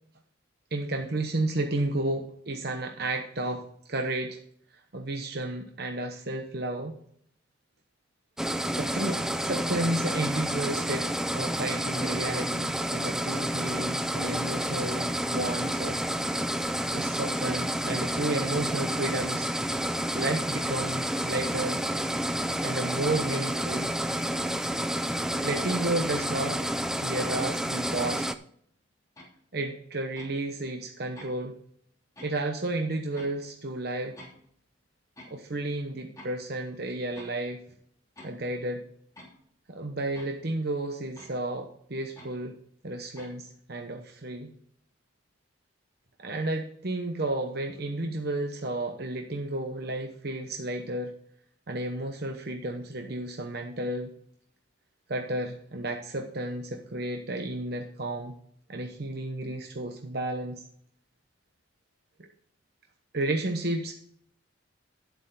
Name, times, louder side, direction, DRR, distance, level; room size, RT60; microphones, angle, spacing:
voice 1, 0.7-4.4 4.9-6.9 8.5-11.1 11.3-16.0 16.9-19.5 20.1-21.8 22.6-23.9 25.4-26.6 27.0-28.3 29.5-31.5 32.2-34.2 35.3-37.6 38.2-38.8 39.7-42.5 42.8-44.5 46.2-51.1 51.7-54.1 55.1-58.4 58.7-60.6 62.2-62.3 63.1-63.9, right 2 dB, 55° right, 3 dB, 1.0 m, -32 dB
sound 1, 8.4-28.4, right 1 dB, 5° right, 0.4 m, -30 dB
sound 2, 26.2-26.3 27.2-27.3 28.2-28.3 29.2-29.3 30.2-30.4 31.2-31.3 32.2-32.4 33.2-33.4 34.2-34.5 35.2-35.4 36.2-36.5 37.2-37.5 38.2-38.5 39.2-39.4 40.2-40.5 41.2-41.4 42.2-42.4 43.2-43.3, left 1 dB, 15° left, 3.0 m, -48 dB
11.0 x 8.0 x 3.9 m, 0.63 s
head